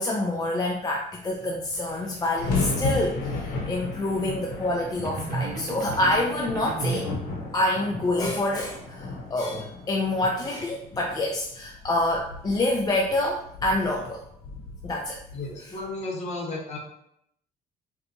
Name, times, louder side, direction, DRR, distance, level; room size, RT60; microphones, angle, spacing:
voice 1, 0.0-7.1 7.5-14.2 14.8-15.2, left 1 dB, 25° left, -1 dB, 0.4 m, -27 dB
sound 1, 1.2-1.3 1.5-15.9, left 3 dB, 65° left, 0.8 m, -35 dB
sound 2, 5.0-7.3, right 4 dB, 60° right, 0.5 m, -34 dB
voice 2, 15.3-16.8, left 2 dB, 40° left, -2 dB, 1.0 m, -33 dB
4.0 x 2.2 x 2.7 m, 0.74 s
cardioid pair, 110°, 17 cm